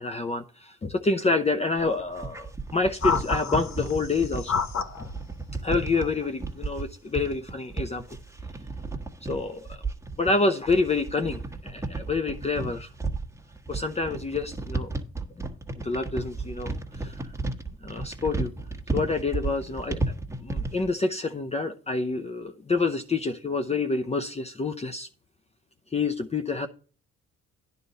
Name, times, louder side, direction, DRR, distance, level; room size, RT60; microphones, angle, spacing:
voice 1, 0.0-4.6 5.0-5.1 5.6-8.0 9.2-9.8 10.2-12.9 13.7-14.9 15.8-17.3 17.8-18.5 18.9-25.1 25.9-26.7, left 3 dB, 20° left, 7 dB, 0.6 m, -28 dB
sound 1, 1.8-20.9, right 3 dB, 10° right, 1.4 m, -33 dB
sound 2, 3.0-5.1 6.0-6.3, left 5 dB, 60° left, 1.3 m, -29 dB
10.0 x 4.1 x 6.5 m, 0.40 s
cardioid pair, 90°, 30 cm